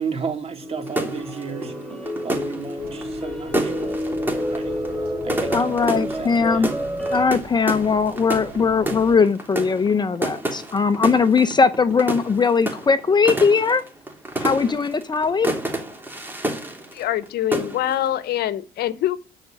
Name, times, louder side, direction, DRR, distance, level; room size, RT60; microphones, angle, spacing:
voice 1, 0.0-4.8 5.2-6.7, right 6 dB, 35° right, 2.8 m, -34 dB
sound 1, 0.6-7.3, equal, 5° left, 2.6 m, -29 dB
sound 2, 0.9-17.3 17.5-18.1, right 1 dB, 10° right, 3.3 m, -29 dB
Wind Howling thru window crack, 2.8-9.1, right 3 dB, 65° right, 3.2 m, -43 dB
voice 2, 5.5-6.7 7.1-13.8 14.4-15.5, left 5 dB, 25° left, 0.8 m, -19 dB
voice 3, 16.9-19.2, left 12 dB, 70° left, 1.0 m, -24 dB
13.0 x 5.3 x 9.0 m
cardioid pair, 110°, 17 cm